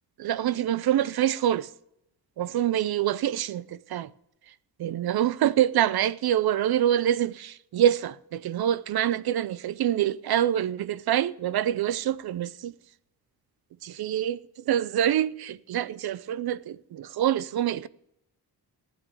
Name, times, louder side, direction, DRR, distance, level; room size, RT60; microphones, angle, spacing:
voice 1, 0.2-1.7 2.4-4.1 4.5-4.6 4.8-12.7 13.8-17.9, right 11 dB, 65° right, 0.6 m, -26 dB
15.5 x 8.5 x 6.8 m
wide cardioid pair, 150°, 41 cm